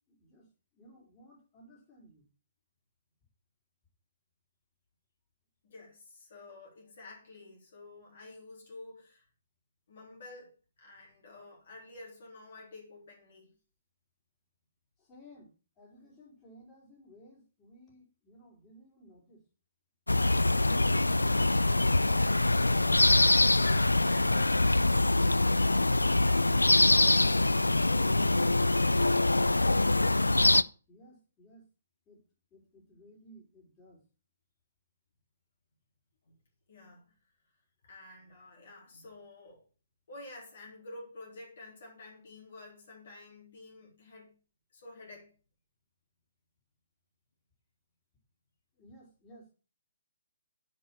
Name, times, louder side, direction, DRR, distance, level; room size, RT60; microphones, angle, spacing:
voice 1, 0.1-0.5 0.7-2.3 15.0-15.5 15.8-19.4 30.9-31.6 32.1-32.2 32.5-34.0 48.8-49.5, equal, 20° left, 4.4 m, -57 dB
voice 2, 5.6-9.3 9.9-13.5 22.0-28.8 36.3-36.4 36.7-37.1 37.8-39.6 40.1-44.4 44.7-45.3, left 2 dB, 55° left, 3.5 m, -50 dB
sound 1, 20.1-30.6, left 2 dB, 85° left, 0.4 m, -24 dB
10.0 x 5.4 x 6.1 m
figure-of-eight pair, 130°, 0 cm